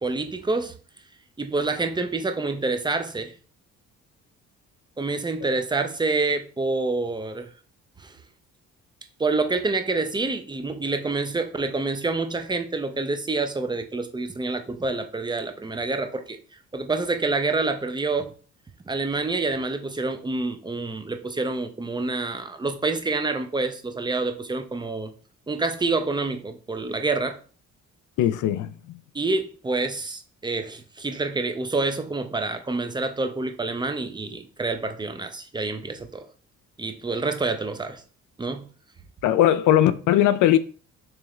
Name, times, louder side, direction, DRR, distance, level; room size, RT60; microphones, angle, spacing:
voice 1, 0.0-0.7 1.4-3.3 5.0-7.5 8.0-8.1 9.2-16.4 16.7-18.3 18.9-25.1 25.5-27.4 29.1-36.3 36.8-38.0 38.4-38.7, right 3 dB, 15° right, 0.5 m, -27 dB
voice 2, 28.2-28.7 39.2-40.6, left 12 dB, 80° left, 0.5 m, -19 dB
3.6 x 3.1 x 3.0 m
cardioid pair, 90°, 30 cm